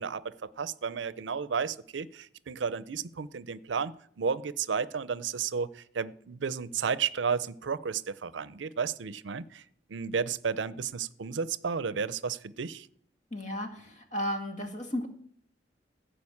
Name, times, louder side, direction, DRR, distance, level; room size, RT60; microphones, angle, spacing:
voice 1, 0.0-12.9, right 6 dB, 85° right, 0.5 m, -33 dB
voice 2, 13.3-15.1, equal, 40° left, 1.8 m, -34 dB
15.0 x 5.1 x 8.5 m
head